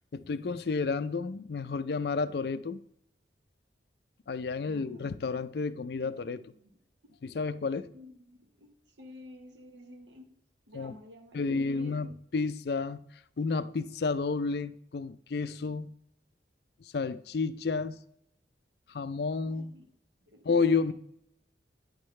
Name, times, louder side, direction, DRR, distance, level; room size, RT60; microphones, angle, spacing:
voice 1, 0.1-2.8 4.3-6.5 7.2-7.9 10.7-11.0 11.3-13.0 13.4-15.9 16.9-18.0 18.9-19.7 20.4-20.9, left 4 dB, 60° left, 0.4 m, -31 dB
voice 2, 4.6-5.2 5.8-6.7 7.9-10.3 10.7-12.2 19.4-19.9 20.2-20.9, left 1 dB, 75° right, 1.2 m, -51 dB
9.5 x 6.4 x 3.2 m
head